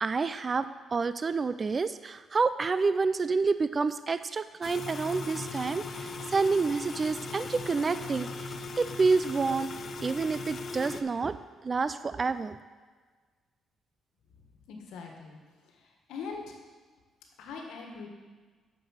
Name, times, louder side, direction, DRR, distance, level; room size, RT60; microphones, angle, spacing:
voice 1, 0.0-9.7 10.0-11.4 11.6-12.6, right 4 dB, 35° right, 13 dB, 0.4 m, -28 dB
sound 1, 4.6-11.0, left 3 dB, 50° left, 0.7 m, -38 dB
voice 2, 14.7-15.4 16.1-16.5 17.4-18.1, left 5 dB, 90° left, 1 dB, 1.6 m, -41 dB
7.8 x 6.8 x 6.5 m, 1.5 s
cardioid pair, 90°, 0 cm